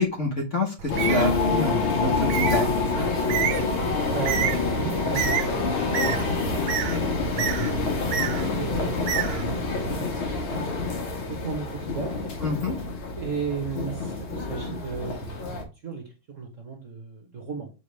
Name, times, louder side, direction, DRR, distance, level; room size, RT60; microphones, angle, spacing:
voice 1, 0.0-2.7 12.4-12.7, left 1 dB, 40° left, 1.3 m, -27 dB
Bird, 0.8-9.9, right 9 dB, 65° right, 1.2 m, -31 dB
sound 1, 0.9-15.6, left 4 dB, 75° left, 2.5 m, -27 dB
voice 2, 4.1-7.0 7.9-9.1 9.4-10.9 11.3-12.3 13.2-15.5 15.8-17.7, right 5 dB, 45° right, 1.4 m, -35 dB
7.2 x 4.7 x 3.3 m
omnidirectional pair, 2.3 m